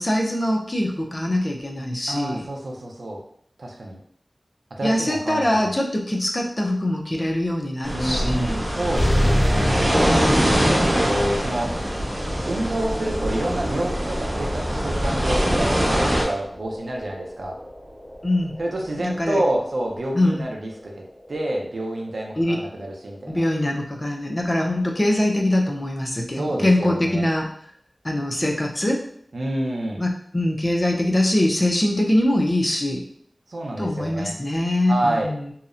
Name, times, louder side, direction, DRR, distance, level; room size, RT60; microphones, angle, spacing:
voice 1, 0.0-2.5 4.8-8.6 10.0-10.5 18.2-18.5 19.0-19.4 20.1-20.4 22.4-22.6 23.3-27.5 28.0-29.0 30.0-33.0 33.8-35.5, left 1 dB, 35° left, 0 dB, 0.5 m, -23 dB
voice 2, 2.1-3.2 3.6-4.0 4.7-5.7 7.9-9.7 10.8-11.7 12.5-17.6 18.6-21.0 21.3-23.4 26.3-27.3 29.3-30.0 33.5-34.3 34.9-35.3, right 1 dB, 85° right, 0 dB, 0.4 m, -28 dB
sound 1, 7.8-16.2, equal, 55° right, 0.9 m, -23 dB
sound 2, 8.9-24.0, equal, 25° right, 0.8 m, -31 dB
2.7 x 2.0 x 2.4 m, 0.65 s
wide cardioid pair, 60°, 0 cm